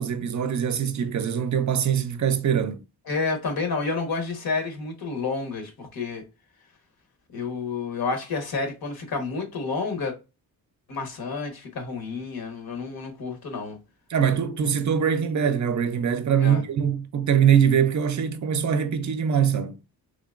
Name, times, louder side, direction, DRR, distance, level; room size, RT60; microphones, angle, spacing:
voice 1, 0.0-2.8 14.1-19.8, right 8 dB, 50° right, 0.5 m, -23 dB
voice 2, 3.1-6.2 7.3-10.1 10.9-13.8 16.4-16.6, left 4 dB, 65° left, 1.2 m, -30 dB
3.7 x 2.9 x 2.4 m
wide cardioid pair, 140°, 38 cm